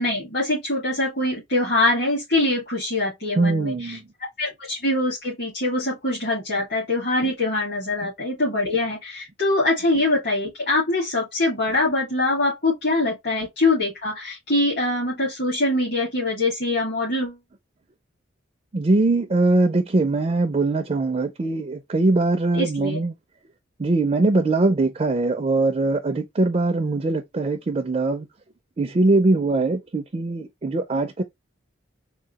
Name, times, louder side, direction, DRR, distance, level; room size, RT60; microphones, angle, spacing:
voice 1, 0.0-4.0 4.4-17.4 22.5-23.0, left 2 dB, 55° left, 1.7 m, -23 dB
voice 2, 3.4-4.0 8.0-8.1 18.7-23.2 23.8-28.3 28.8-31.2, right 2 dB, 30° right, 0.4 m, -21 dB
3.7 x 2.3 x 4.0 m
head